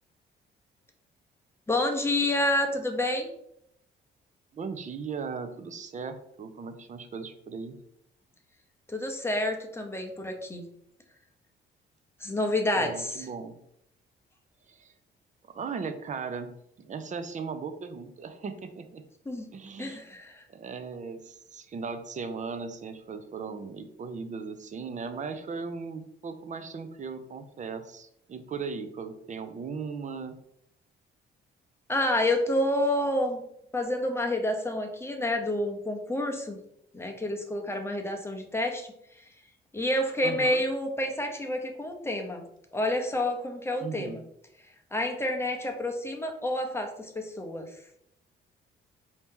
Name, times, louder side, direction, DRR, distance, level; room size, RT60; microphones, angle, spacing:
voice 1, 1.7-3.3 8.9-10.6 12.2-13.3 19.3-19.5 19.8-20.5 31.9-33.5 33.7-36.6 36.9-39.2 39.7-42.4 42.7-44.2 44.6-47.8, left 1 dB, 10° left, 3 dB, 0.7 m, -29 dB
voice 2, 4.5-7.8 12.8-13.5 14.7-14.9 15.5-16.5 16.8-19.0 19.5-20.0 20.5-30.4 40.2-40.6 43.8-44.2, right 5 dB, 40° right, 9 dB, 0.5 m, -37 dB
4.4 x 2.8 x 3.6 m, 0.75 s
cardioid pair, 90°, 20 cm